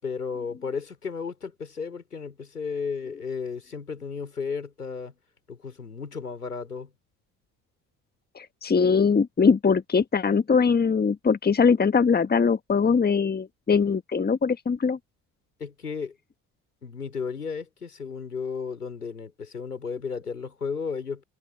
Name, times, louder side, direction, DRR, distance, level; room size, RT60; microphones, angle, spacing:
voice 1, 0.0-5.2 5.5-6.9 15.6-16.2 16.8-21.2, left 5 dB, 85° left, 5.4 m, -34 dB
voice 2, 8.3-15.0, left 5 dB, 20° left, 1.6 m, -22 dB
figure-of-eight pair, 55°, 45 cm